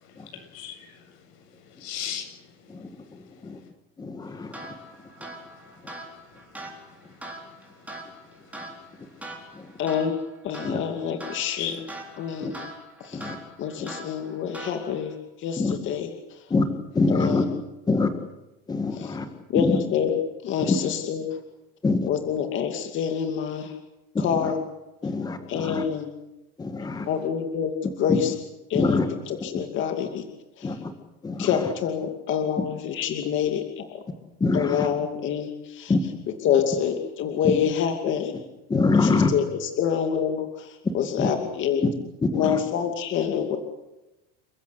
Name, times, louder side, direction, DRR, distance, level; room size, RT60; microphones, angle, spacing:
voice 1, 0.1-1.0 1.6-2.3 7.0-7.5 11.6-11.7, left 9 dB, 85° left, 5 dB, 8.0 m, -36 dB
voice 2, 2.7-3.6 4.0-4.8 9.5-9.7 10.6-10.8 12.4-12.5 13.1-13.4 13.8-13.9 15.6-15.7 16.5-16.7 16.9-17.4 17.9-18.1 18.7-19.3 19.5-19.8 20.6-20.8 21.8-22.1 24.3-24.5 25.0-25.8 26.6-27.1 28.1-28.2 28.7-29.1 30.6-30.9 31.2-31.7 34.4-34.9 35.9-36.0 38.7-39.3 41.2-41.3 42.2-42.6, left 3 dB, 15° left, 7 dB, 1.9 m, -25 dB
sound 1, 4.5-15.2, right 1 dB, 5° right, 4.5 m, -42 dB
voice 3, 9.8-11.8 12.2-12.7 13.0-16.5 17.1-17.5 19.0-19.2 19.5-21.4 22.1-23.7 24.2-24.6 25.5-26.1 27.1-27.7 28.0-28.3 28.7-29.0 29.3-30.2 30.6-30.8 31.4-33.6 34.5-35.9 36.4-38.3 39.0-41.8 42.3-43.6, left 8 dB, 40° left, 5 dB, 2.6 m, -27 dB
30.0 x 15.5 x 8.3 m, 0.99 s
cardioid pair, 170°, 30 cm